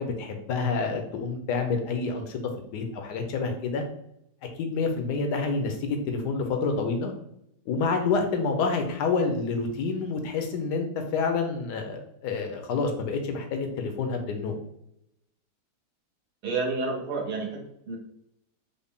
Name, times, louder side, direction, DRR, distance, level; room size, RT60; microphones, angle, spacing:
voice 1, 0.0-2.4 2.7-3.8 4.6-7.1 7.7-14.5, left 4 dB, 75° left, 4 dB, 1.2 m, -28 dB
voice 2, 16.4-18.0, right 3 dB, 70° right, 1 dB, 1.3 m, -30 dB
3.8 x 2.1 x 3.5 m, 0.77 s
omnidirectional pair, 1.9 m